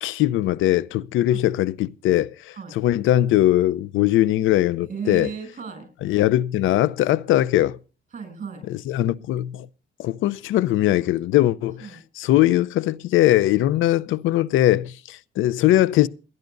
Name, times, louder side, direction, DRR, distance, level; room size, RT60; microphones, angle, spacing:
voice 1, 0.0-5.3 6.0-7.8 8.7-9.7 10.0-16.1, left 14 dB, 90° left, 0.6 m, -20 dB
voice 2, 4.8-5.9 8.1-8.7 11.8-12.0, right 6 dB, 40° right, 7.5 m, -34 dB
28.5 x 10.5 x 2.6 m
cardioid pair, 90°, 20 cm